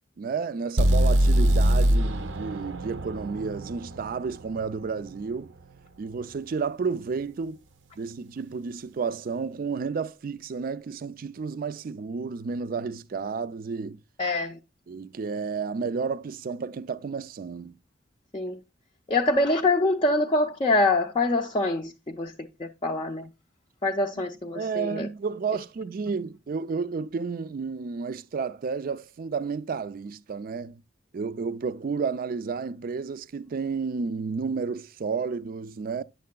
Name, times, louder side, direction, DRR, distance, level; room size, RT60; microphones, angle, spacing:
voice 1, 0.2-5.5 6.0-7.6 8.0-14.0 14.9-17.8 24.5-30.8 31.1-36.0, right 5 dB, 50° right, 0.4 m, -31 dB
sound 1, 0.8-4.7, right 1 dB, 90° right, 0.7 m, -23 dB
voice 2, 14.2-14.6 18.3-18.6 19.1-22.3 22.6-23.3 23.8-25.1, left 2 dB, 30° left, 0.4 m, -25 dB
9.3 x 6.6 x 2.2 m
head